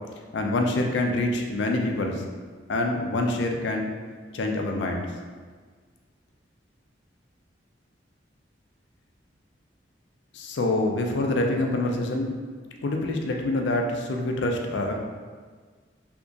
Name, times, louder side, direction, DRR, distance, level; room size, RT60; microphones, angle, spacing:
voice 1, 0.3-2.2 2.7-3.9 4.3-5.1 10.3-12.3 12.8-15.0, left 2 dB, 75° left, 2 dB, 0.4 m, -26 dB
3.5 x 2.9 x 2.6 m, 1.5 s
head